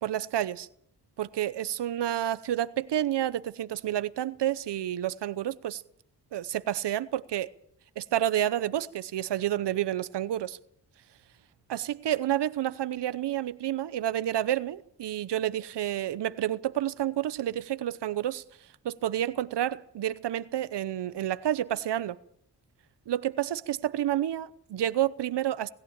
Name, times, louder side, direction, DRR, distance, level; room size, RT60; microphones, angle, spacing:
voice 1, 0.0-0.7 1.2-5.8 6.3-7.5 8.0-10.6 11.7-18.4 18.8-22.2 23.1-25.7, right 12 dB, 85° right, 0.9 m, -29 dB
20.0 x 15.0 x 8.8 m
cardioid pair, 85°, 40 cm